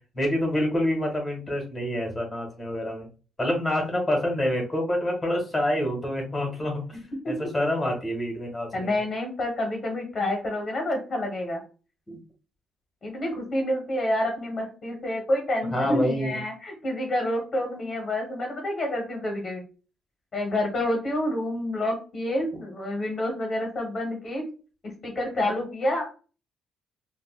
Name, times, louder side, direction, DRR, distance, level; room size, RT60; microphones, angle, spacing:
voice 1, 0.1-3.1 3.4-6.8 7.3-9.0 12.1-12.2 15.6-16.4, left 1 dB, 15° left, 1 dB, 1.5 m, -27 dB
voice 2, 6.9-7.3 8.7-11.6 13.0-19.6 20.3-24.4 24.8-26.1, left 1 dB, 40° left, 1 dB, 1.1 m, -28 dB
3.6 x 2.4 x 2.3 m, 0.35 s
cardioid pair, 90°, 0 cm